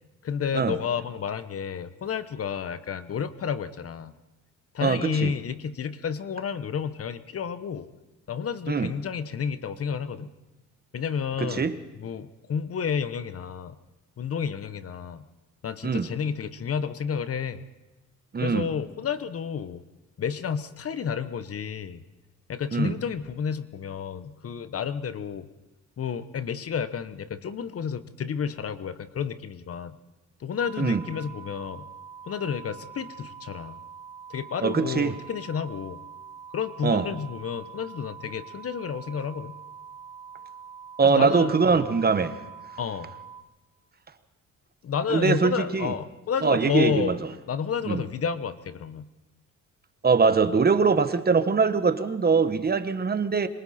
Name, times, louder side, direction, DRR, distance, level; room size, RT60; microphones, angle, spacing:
voice 1, 0.2-4.1 4.7-7.9 8.3-10.3 10.9-13.8 14.2-15.3 15.6-17.6 18.4-19.8 20.2-22.0 22.5-25.5 26.0-30.0 30.4-31.9 32.3-33.8 34.3-36.0 36.5-39.6 41.0-41.9 42.8-43.1 44.8-47.2 47.5-49.1, left 7 dB, 50° left, 13 dB, 1.2 m, -31 dB
voice 2, 4.8-5.3 8.7-8.9 11.4-11.8 15.8-16.1 18.3-18.7 22.7-23.0 30.8-31.0 34.6-35.2 36.8-37.1 41.0-42.4 45.1-45.9 46.4-47.2 47.8-48.0 50.0-53.5, right 5 dB, 30° right, 10 dB, 1.4 m, -22 dB
sound 1, 30.6-43.4, right 7 dB, ahead, 7.3 m, -44 dB
26.5 x 23.5 x 4.4 m, 1.1 s
cardioid pair, 90°, 30 cm